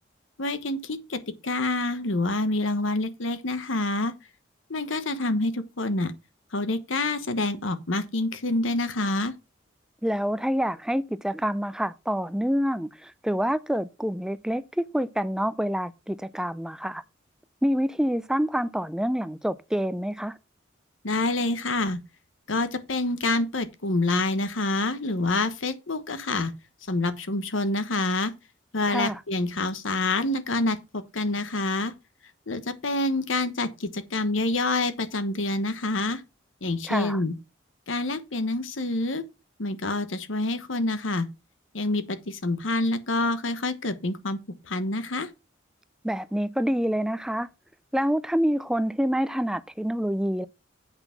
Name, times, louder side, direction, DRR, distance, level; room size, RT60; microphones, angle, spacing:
voice 1, 0.4-4.1 4.7-6.1 6.5-9.3 21.0-22.0 22.5-26.5 26.9-28.3 28.7-31.9 32.5-36.2 36.6-37.3 37.9-39.2 39.6-41.3 41.7-44.4 44.6-45.3, left 2 dB, 80° left, 1.2 m, -27 dB
voice 2, 10.0-17.0 17.6-20.4 28.9-29.2 36.9-37.2 46.0-47.5 47.9-50.5, equal, 5° right, 0.4 m, -27 dB
8.0 x 5.7 x 5.8 m
head